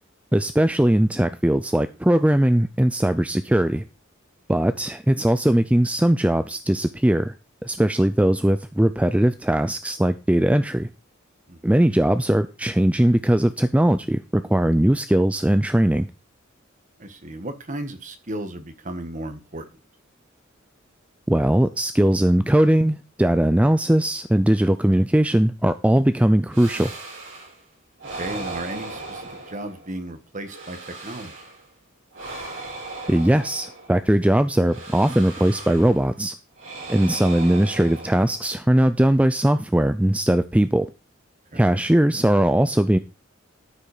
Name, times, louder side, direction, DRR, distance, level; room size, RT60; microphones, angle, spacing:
voice 1, 0.3-3.8 4.5-7.3 7.6-10.9 11.6-16.1 21.3-26.9 33.1-36.3 36.9-40.9 41.5-43.0, right 1 dB, 5° right, 11 dB, 0.4 m, -19 dB
voice 2, 17.0-19.6 28.2-31.3 36.8-37.0 41.5-41.7, right 1 dB, 40° right, 8 dB, 1.4 m, -35 dB
sound 1, 26.5-27.6 28.0-30.0 30.4-31.7 32.1-34.1 34.7-36.1 36.6-38.7, right 2 dB, 70° right, 4.8 m, -37 dB
12.5 x 5.5 x 4.9 m, 0.31 s
head